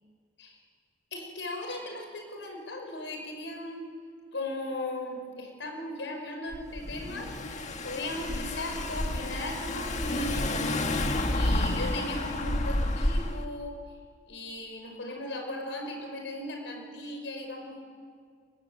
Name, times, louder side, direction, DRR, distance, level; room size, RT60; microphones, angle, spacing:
voice 1, 1.1-3.9 4.3-7.3 7.8-10.8 11.3-13.8 14.3-17.8, left 1 dB, 85° left, 4 dB, 5.6 m, -37 dB
Car / Engine, 6.5-13.5, left 1 dB, 40° left, 1.7 m, -30 dB
30.0 x 21.5 x 8.3 m, 2.1 s
head